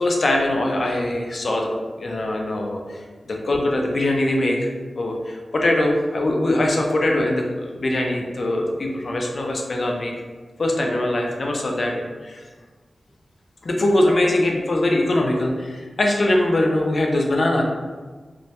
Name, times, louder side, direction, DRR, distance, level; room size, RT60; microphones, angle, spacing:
voice 1, 0.0-1.7 2.0-3.0 3.3-10.1 10.6-12.4 13.6-17.6, left 1 dB, 60° left, 0 dB, 0.4 m, -22 dB
2.1 x 2.1 x 2.8 m, 1.4 s
wide cardioid pair, 90°, 0 cm